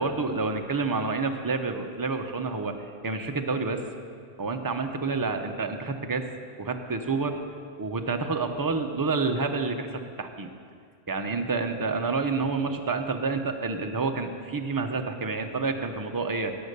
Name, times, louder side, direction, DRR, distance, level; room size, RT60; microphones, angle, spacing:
voice 1, 0.0-2.7 3.0-3.8 4.4-6.3 6.6-7.4 7.8-10.5 11.1-16.6, right 4 dB, 20° right, 5 dB, 0.7 m, -28 dB
17.5 x 7.0 x 6.8 m, 2.2 s
omnidirectional pair, 1.3 m